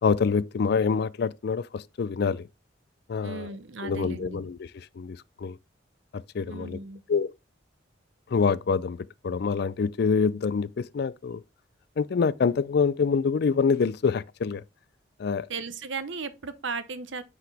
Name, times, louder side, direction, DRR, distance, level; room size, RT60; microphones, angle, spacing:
voice 1, 0.0-2.5 3.1-3.5 3.8-5.6 6.1-6.8 7.1-7.3 8.3-11.4 12.0-14.6 15.2-15.5, left 5 dB, 60° left, 0.4 m, -26 dB
voice 2, 3.2-4.4 6.4-7.0 15.5-17.2, right 4 dB, 80° right, 0.8 m, -36 dB
9.4 x 4.9 x 3.4 m
head